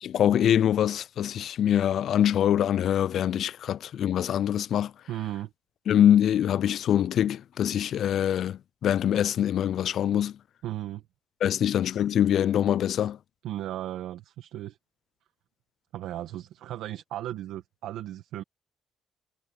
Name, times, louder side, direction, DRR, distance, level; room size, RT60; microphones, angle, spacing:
voice 1, 0.0-4.9 5.9-10.4 11.4-13.2, left 10 dB, 70° left, 0.4 m, -24 dB
voice 2, 5.1-5.5 10.6-11.0 11.5-11.7 13.4-14.8 15.9-18.4, right 13 dB, 90° right, 1.4 m, -36 dB
cardioid pair, 90°, 0 cm